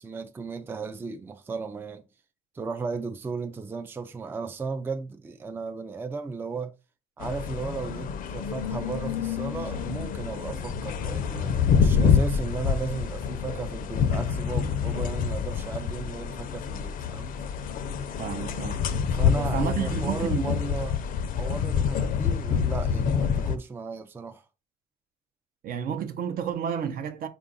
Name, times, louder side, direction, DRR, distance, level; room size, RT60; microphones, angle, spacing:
voice 1, 0.0-2.0 2.5-6.7 7.2-17.3 19.1-21.0 21.4-24.4, right 4 dB, 15° right, 0.4 m, -35 dB
sound 1, 7.2-23.6, left 7 dB, 55° left, 0.5 m, -27 dB
voice 2, 18.2-18.8 19.3-20.6 25.6-27.3, right 7 dB, 60° right, 0.7 m, -31 dB
4.6 x 2.4 x 3.8 m
cardioid pair, 110°, 17 cm